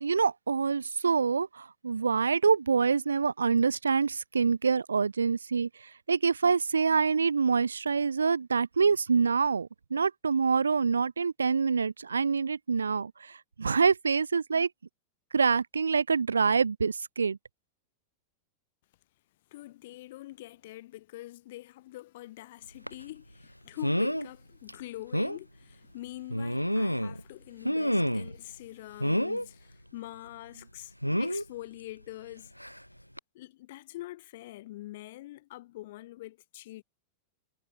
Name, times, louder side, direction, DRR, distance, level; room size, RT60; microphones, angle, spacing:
voice 1, 0.0-5.7 6.1-14.7 15.3-17.4, right 5 dB, 75° right, 0.4 m, -26 dB
voice 2, 19.5-32.5 33.3-36.8, left 16 dB, 55° left, 2.2 m, -45 dB
sound 1, 22.9-23.0 23.8-24.3 24.7-24.8 25.1-25.4 26.3-27.2 27.6-28.4 29.0-29.5 31.0-31.4 32.6-32.8 33.2-33.3, equal, 90° left, 0.8 m, -28 dB
figure-of-eight pair, 90°, 0 cm